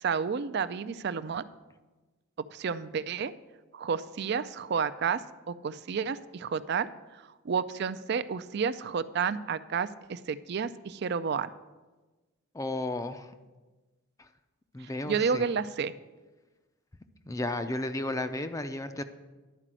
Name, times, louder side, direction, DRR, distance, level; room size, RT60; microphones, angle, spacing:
voice 1, 0.0-1.4 2.5-3.3 3.7-5.2 5.5-11.5 15.1-15.9, right 6 dB, 55° right, 14 dB, 0.4 m, -31 dB
voice 2, 12.5-13.3 14.7-15.5 17.3-19.0, left 2 dB, 15° left, 9 dB, 0.5 m, -33 dB
11.0 x 5.0 x 7.5 m, 1.2 s
head